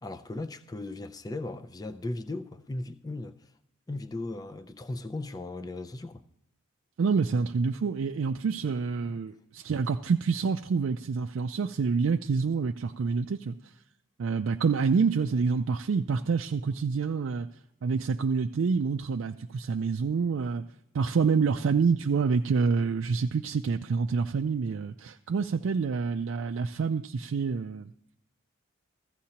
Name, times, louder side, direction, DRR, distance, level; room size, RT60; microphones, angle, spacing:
voice 1, 0.0-3.5 3.9-6.3 9.0-9.3, left 2 dB, 20° left, 0.4 m, -37 dB
voice 2, 7.0-13.6 14.2-17.5 17.8-20.7 20.9-27.9, right 5 dB, 70° right, 0.4 m, -27 dB
15.0 x 14.5 x 2.9 m
head